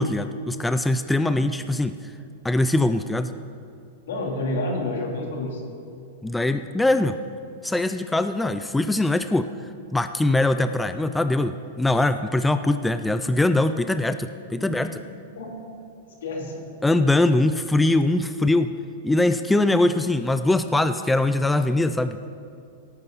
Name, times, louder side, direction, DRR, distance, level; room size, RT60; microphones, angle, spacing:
voice 1, 0.0-2.0 2.4-3.3 6.2-7.2 7.6-9.5 9.9-14.9 16.8-18.7 19.0-22.3, left 2 dB, 5° left, 10 dB, 0.3 m, -22 dB
voice 2, 4.1-5.6 14.6-14.8 15.3-15.6 16.2-16.6, left 2 dB, 80° left, -1 dB, 3.1 m, -29 dB
17.5 x 9.2 x 4.0 m, 2.5 s
supercardioid pair, 150°, 0 cm